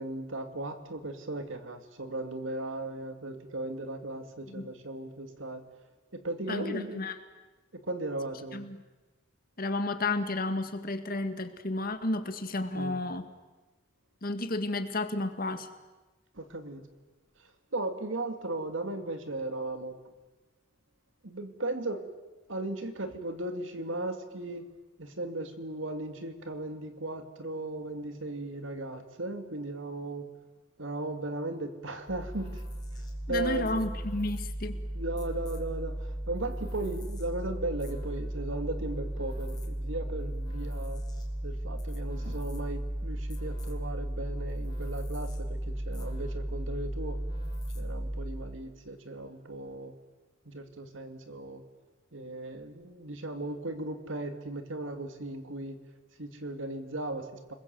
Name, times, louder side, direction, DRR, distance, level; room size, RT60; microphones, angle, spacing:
voice 1, 0.0-5.6 6.1-7.1 7.7-8.7 12.7-13.0 16.4-16.8 17.7-19.9 21.2-22.1 22.5-24.7 25.0-30.3 30.8-32.6 33.3-33.8 34.9-41.0 41.4-45.6 45.8-47.2 47.7-49.9 50.5-51.6 52.1-55.8 56.2-57.5, right 2 dB, 80° right, 7 dB, 2.6 m, -36 dB
voice 2, 6.5-7.2 8.5-8.8 9.6-13.3 14.2-15.7 33.3-34.8, left 2 dB, 50° left, 8 dB, 2.0 m, -32 dB
sound 1, 32.1-48.6, right 1 dB, 20° left, 3.6 m, -35 dB
29.5 x 21.5 x 7.9 m, 1.2 s
head